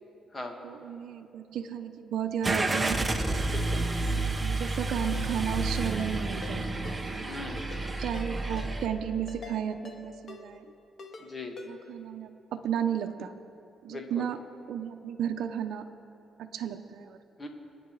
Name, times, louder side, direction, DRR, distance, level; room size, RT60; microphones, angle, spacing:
voice 1, 0.6-3.0 3.8-6.6 8.0-10.6 11.7-13.3 13.8-14.4 14.7-15.8 16.4-17.2, right 9 dB, 75° right, 5 dB, 0.8 m, -33 dB
Car / Engine starting, 2.4-8.9, right 2 dB, 20° right, 1.3 m, -30 dB
voice 2, 3.5-3.9 7.2-7.7 11.3-11.6 13.9-14.3 17.4-17.5, left 3 dB, 25° left, 3 dB, 2.2 m, -39 dB
Ringtone, 5.1-5.3 5.8-6.1 6.4-6.6 6.8-7.0 7.6-7.8 8.1-8.3 8.6-8.7 9.3-9.6 9.8-10.0 10.3-10.4 11.0-11.3 11.6-11.7, left 5 dB, 60° left, 2.0 m, -45 dB
26.5 x 9.7 x 4.9 m, 2.9 s
cardioid pair, 90°, 0 cm